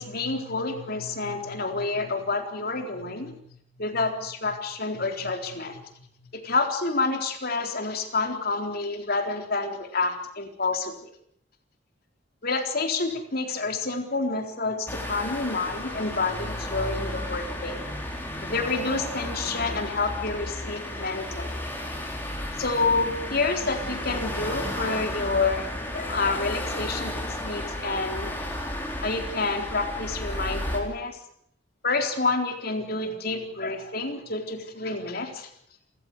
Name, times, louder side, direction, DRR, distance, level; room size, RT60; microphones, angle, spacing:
voice 1, 0.0-3.3 3.8-5.8 6.3-11.1 12.4-17.8 18.4-21.5 22.6-25.6 25.9-28.3 29.0-31.2 31.8-35.5, left 3 dB, 50° left, 5 dB, 4.0 m, -28 dB
sound 1, 14.9-30.8, left 1 dB, 10° left, 4.9 m, -33 dB
29.0 x 15.5 x 8.2 m, 0.67 s
head